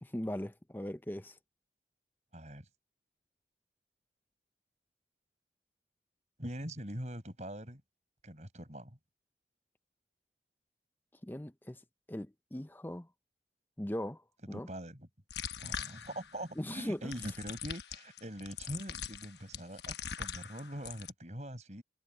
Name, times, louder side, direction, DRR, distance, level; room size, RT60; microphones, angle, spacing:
voice 1, 0.0-1.4 11.2-11.8 12.1-13.1 13.8-14.2 14.5-14.7 16.6-17.1, left 1 dB, 10° left, 0.7 m, -39 dB
voice 2, 2.3-2.7 6.4-7.8 8.2-9.0 14.5-15.1 15.6-21.8, right 1 dB, 40° right, 6.3 m, -43 dB
sound 1, 15.3-16.4 17.1-21.1, left 7 dB, 75° left, 1.1 m, -42 dB
head